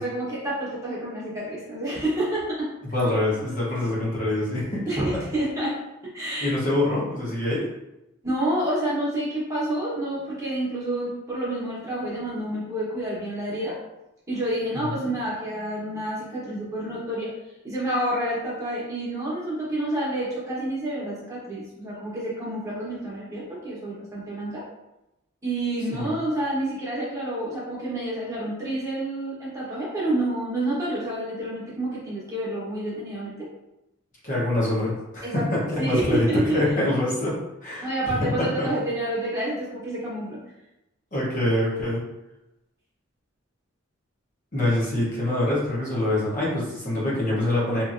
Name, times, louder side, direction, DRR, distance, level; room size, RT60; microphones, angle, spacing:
voice 1, 0.0-2.7 4.9-5.7 6.1-6.5 8.2-13.7 14.3-17.3 17.6-24.6 25.4-33.3 35.2-35.4 35.8-36.6 37.8-40.4, right 1 dB, 15° right, -7 dB, 1.0 m, -28 dB
voice 2, 2.9-4.8 6.4-7.7 14.9-15.0 26.0-26.1 34.2-38.7 41.1-42.0 44.5-47.8, left 1 dB, 40° left, -6 dB, 0.9 m, -25 dB
2.9 x 2.6 x 2.5 m, 0.93 s
head